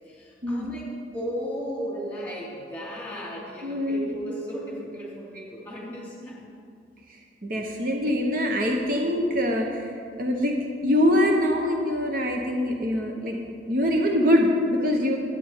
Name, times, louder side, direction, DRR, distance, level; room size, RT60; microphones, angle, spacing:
voice 1, 0.1-6.5, equal, 10° left, -5 dB, 2.7 m, -35 dB
voice 2, 3.6-4.1 7.4-9.8 10.2-10.6 10.8-13.4 13.7-15.2, left 1 dB, 50° right, 1 dB, 0.9 m, -23 dB
10.5 x 8.9 x 4.5 m, 2.4 s
head